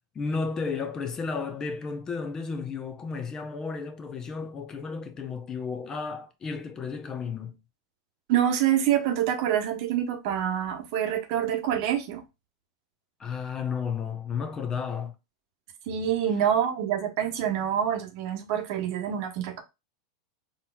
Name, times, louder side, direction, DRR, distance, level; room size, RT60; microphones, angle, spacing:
voice 1, 0.1-7.6 13.2-15.1, left 5 dB, 25° left, 0.8 m, -33 dB
voice 2, 8.3-12.2 15.9-19.6, right 10 dB, 60° right, 0.9 m, -26 dB
4.0 x 3.0 x 2.3 m
hypercardioid pair, 105°, 2 cm